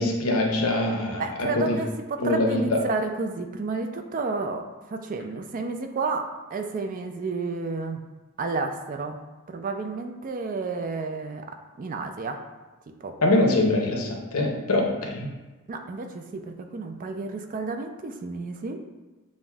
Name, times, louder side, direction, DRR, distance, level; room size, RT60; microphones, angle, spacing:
voice 1, 0.0-1.8 2.2-2.8 13.2-15.3, left 2 dB, 75° left, 0 dB, 0.8 m, -24 dB
voice 2, 1.2-4.6 4.9-8.0 8.4-9.2 9.5-11.5 11.8-12.4 13.0-13.1 15.7-18.8, right 3 dB, 40° right, 5 dB, 0.3 m, -31 dB
7.1 x 2.6 x 2.3 m, 1.2 s
head